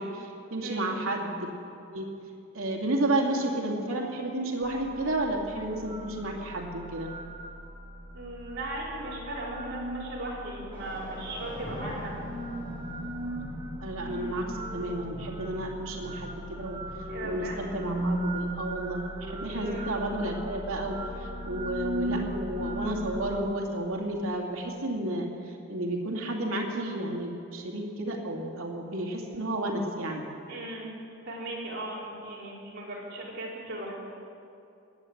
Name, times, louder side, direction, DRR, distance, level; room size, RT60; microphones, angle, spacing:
voice 1, 0.0-1.5 1.9-2.1 2.5-7.1 13.8-16.8 17.2-30.3, right 1 dB, 80° right, 0 dB, 2.4 m, -32 dB
Psycho Confusion State, 4.6-23.4, right 1 dB, 20° right, 1.2 m, -37 dB
voice 2, 8.1-12.2 17.0-17.6 19.5-19.9 30.5-31.0 31.2-33.9, right 1 dB, 50° right, -6 dB, 4.8 m, -37 dB
sound 1, 10.7-19.6 20.3-20.4 21.6-21.7 21.9-24.8, equal, 10° left, 4.1 m, -45 dB
20.0 x 8.7 x 7.9 m, 2.6 s
head